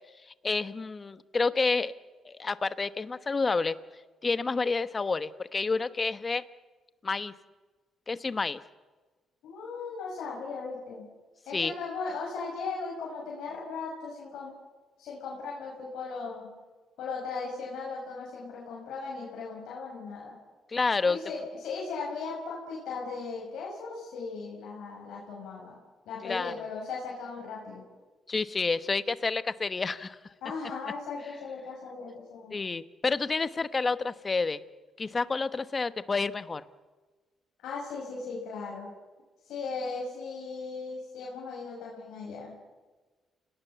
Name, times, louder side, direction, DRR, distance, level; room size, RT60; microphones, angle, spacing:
voice 1, 0.4-1.9 2.2-3.8 4.2-6.4 7.0-7.3 8.1-8.6 11.5-11.7 20.7-21.2 26.2-26.5 28.3-30.2 32.5-34.6 35.0-36.6, left 4 dB, 30° left, 13 dB, 1.1 m, -29 dB
voice 2, 9.4-11.0 11.5-14.5 15.0-16.5 17.0-20.4 21.1-25.8 26.1-27.8 30.4-32.5 37.6-38.9 39.4-42.5, left 4 dB, 80° left, -4 dB, 6.2 m, -37 dB
29.5 x 18.5 x 7.0 m, 1.3 s
cardioid pair, 90°, 0 cm